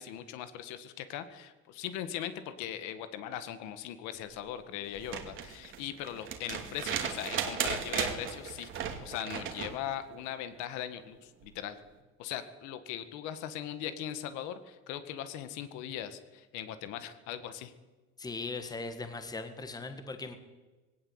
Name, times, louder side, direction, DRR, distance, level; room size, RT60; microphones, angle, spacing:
voice 1, 0.0-11.8 12.2-17.7, left 10 dB, 75° left, 11 dB, 1.8 m, -40 dB
sound 1, 4.9-9.8 11.4-11.5, right 8 dB, 45° right, 2.5 m, -36 dB
voice 2, 18.2-20.3, left 3 dB, 15° left, 8 dB, 1.8 m, -39 dB
20.0 x 17.5 x 8.1 m, 1.2 s
cardioid pair, 160°, 29 cm